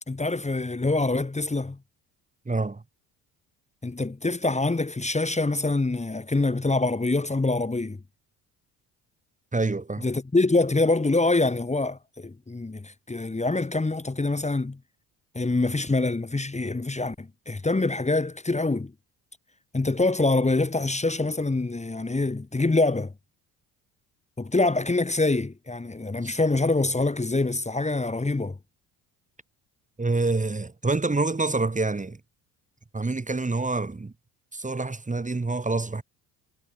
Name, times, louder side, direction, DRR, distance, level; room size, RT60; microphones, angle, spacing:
voice 1, 0.1-1.8 3.8-8.0 10.0-14.8 15.3-18.9 19.7-23.1 24.4-28.6, left 2 dB, 15° left, 2.1 m, -25 dB
voice 2, 2.5-2.8 9.5-10.1 26.2-26.4 30.0-32.2 32.9-34.1 34.5-36.0, right 3 dB, 15° right, 2.2 m, -27 dB
supercardioid pair, 65°, 43 cm